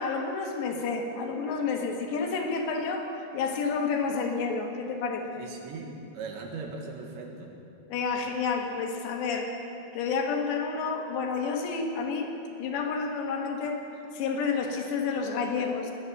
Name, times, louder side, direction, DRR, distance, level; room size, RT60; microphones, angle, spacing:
voice 1, 0.0-5.5 7.9-9.6 9.9-12.3 12.6-13.8 14.1-15.9, left 5 dB, 80° left, 2 dB, 3.6 m, -30 dB
voice 2, 5.4-7.5, right 4 dB, 85° right, 1 dB, 4.0 m, -39 dB
21.0 x 10.0 x 6.5 m, 2.8 s
omnidirectional pair, 5.1 m